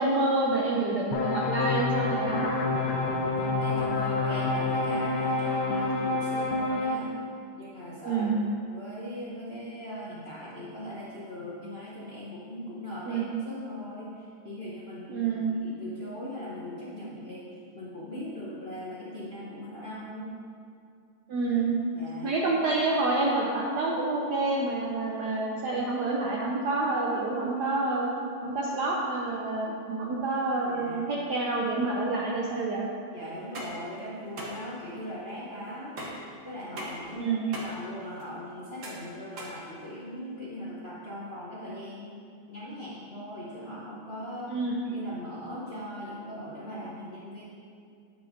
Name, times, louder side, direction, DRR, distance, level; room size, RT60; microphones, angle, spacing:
voice 1, 0.0-2.5 8.0-8.5 13.1-13.3 15.1-15.5 21.3-21.7 22.2-28.1 28.4-32.8 37.1-37.5 44.5-44.8, right 3 dB, 70° right, -3 dB, 1.0 m, -28 dB
sound 1, 1.1-6.9, left 3 dB, 70° left, 1.1 m, -28 dB
voice 2, 2.8-7.1 7.6-8.3 8.7-15.3 15.6-20.3 21.9-22.3 28.4-28.5 30.6-31.0 33.1-36.1 36.4-44.6 44.9-47.4, equal, 45° left, -8 dB, 0.8 m, -39 dB
sound 2, 33.3-40.3, equal, 45° right, 1.1 m, -42 dB
8.5 x 7.6 x 2.6 m, 2.4 s
omnidirectional pair, 2.4 m